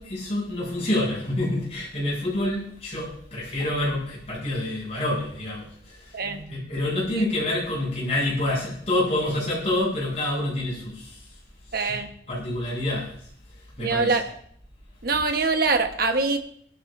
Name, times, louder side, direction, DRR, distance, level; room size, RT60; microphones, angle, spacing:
voice 1, 0.0-6.2 6.5-11.3 11.7-12.0 12.3-13.2 13.8-14.2, left 1 dB, 35° left, 7.5 m, -27 dB
voice 2, 6.1-6.8 7.1-7.3 11.7-12.1 13.8-14.3 15.0-16.4, right 3 dB, 55° right, 1.2 m, -24 dB
22.5 x 12.5 x 2.6 m
head